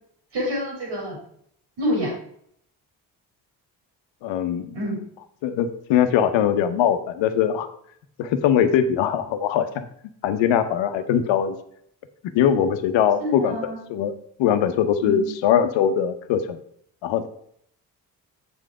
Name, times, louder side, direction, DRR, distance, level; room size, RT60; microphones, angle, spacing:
voice 1, 0.3-1.2 1.8-2.1 4.7-5.0 13.2-13.8 15.0-15.3, equal, 70° right, -3 dB, 4.0 m, -27 dB
voice 2, 4.2-4.8 5.4-7.7 8.2-9.9 10.2-11.6 12.3-13.6 13.9-14.1 14.4-16.6 17.0-17.3, left 9 dB, 80° left, 9 dB, 1.0 m, -21 dB
7.7 x 6.3 x 4.8 m, 0.66 s
hypercardioid pair, 50°, 44 cm